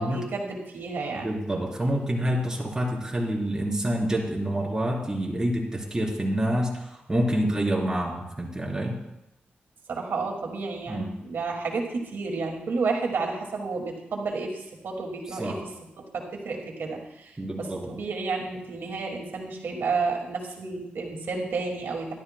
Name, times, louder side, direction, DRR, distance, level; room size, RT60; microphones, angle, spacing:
voice 1, 0.0-1.3 9.9-15.5 16.0-17.3 17.6-22.1, right 4 dB, 75° right, 1 dB, 2.1 m, -31 dB
voice 2, 1.1-9.0 10.9-11.1 15.3-15.6 17.4-17.9, right 1 dB, 15° right, -2 dB, 3.8 m, -27 dB
25.0 x 11.5 x 2.2 m, 0.89 s
wide cardioid pair, 110°, 4 cm